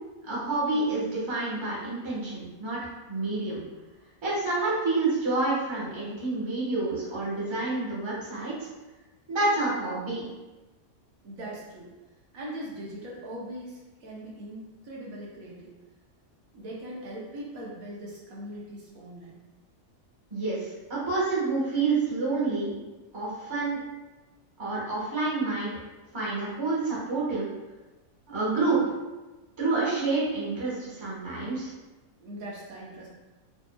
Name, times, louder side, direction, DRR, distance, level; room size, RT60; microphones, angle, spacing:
voice 1, 0.3-2.8 3.1-3.6 4.2-8.7 9.3-10.3 20.3-22.8 23.1-23.8 24.6-25.7 26.1-27.5 28.3-28.8 29.6-31.7, right 3 dB, 20° right, -7 dB, 1.1 m, -28 dB
voice 2, 11.2-11.9 12.3-15.7 16.5-19.4 32.2-33.1, right 1 dB, 75° right, -4 dB, 1.3 m, -40 dB
4.3 x 3.2 x 2.2 m, 1.2 s
omnidirectional pair, 1.5 m